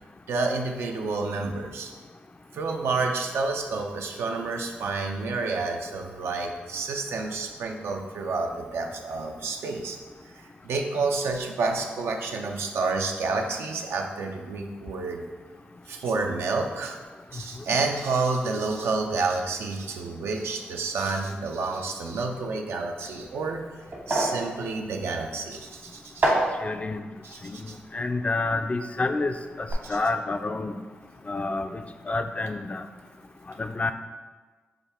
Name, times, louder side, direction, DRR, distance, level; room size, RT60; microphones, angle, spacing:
voice 1, 0.3-1.9 2.5-10.0 10.3-15.2 15.9-17.0 17.3-23.7 24.1-26.3 27.2-27.8 29.8-30.0, right 3 dB, 80° right, 3 dB, 0.5 m, -29 dB
sound 1, 23.3-29.2 29.4-29.7, right 1 dB, 60° right, 1.3 m, -31 dB
voice 2, 26.3-27.0 27.4-30.8 31.3-32.8 33.6-33.9, left 3 dB, 35° left, 8 dB, 0.3 m, -29 dB
5.1 x 2.4 x 4.2 m, 1.3 s
supercardioid pair, 50°, 4 cm